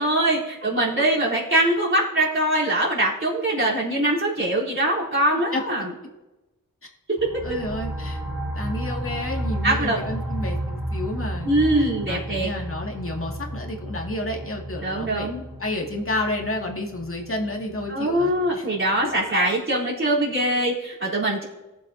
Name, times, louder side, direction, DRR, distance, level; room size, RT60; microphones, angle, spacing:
voice 1, 0.0-5.9 7.2-7.3 9.6-10.0 11.4-12.5 14.8-15.4 17.9-21.4, right 1 dB, 35° right, -6 dB, 4.0 m, -22 dB
sound 1, 7.2-18.5, right 1 dB, 5° right, 4.0 m, -32 dB
voice 2, 7.4-8.2 8.5-15.3 15.6-18.7, left 1 dB, 40° left, 0 dB, 2.4 m, -31 dB
19.0 x 7.6 x 2.9 m, 1.1 s
cardioid pair, 50°, 33 cm